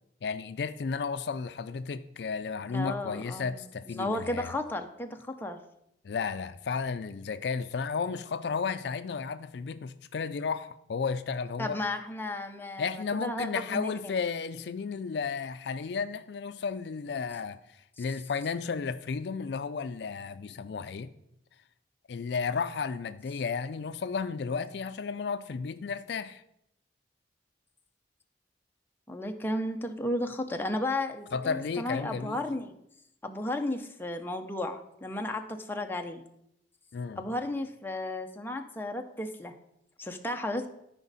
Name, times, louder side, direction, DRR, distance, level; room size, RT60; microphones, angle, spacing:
voice 1, 0.2-4.5 6.0-11.8 12.8-17.6 18.0-21.1 22.1-26.4 31.3-32.4 36.9-37.2, left 5 dB, 65° left, 12 dB, 0.4 m, -33 dB
voice 2, 2.7-3.6 3.9-5.6 11.6-12.9 13.2-14.2 18.0-18.1 29.1-32.7 33.2-36.2 37.2-39.5 40.0-40.7, left 1 dB, 10° left, 4 dB, 0.7 m, -34 dB
13.5 x 5.1 x 4.1 m, 0.79 s
head